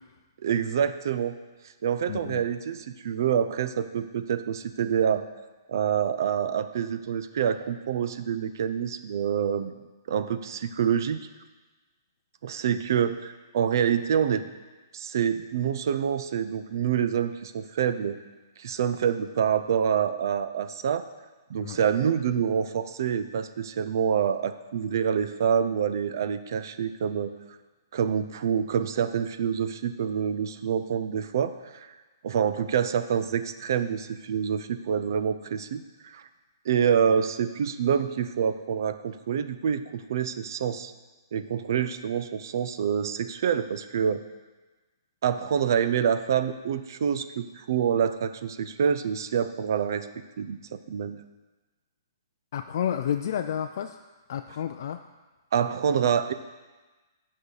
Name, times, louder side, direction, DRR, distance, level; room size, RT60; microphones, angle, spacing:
voice 1, 0.4-1.4 1.8-5.3 5.7-9.7 10.1-11.2 12.4-14.4 14.9-18.2 18.6-21.0 21.5-27.3 27.9-31.9 32.2-36.2 36.6-40.9 41.3-44.2 45.2-50.1 50.4-51.2 55.5-56.3, right 8 dB, 55° right, 11 dB, 0.5 m, -26 dB
voice 2, 2.1-2.4 21.6-21.8 52.5-54.0 54.3-55.0, left 9 dB, 50° left, 6 dB, 0.3 m, -30 dB
9.1 x 5.5 x 4.8 m, 1.2 s
hypercardioid pair, 160°, 2 cm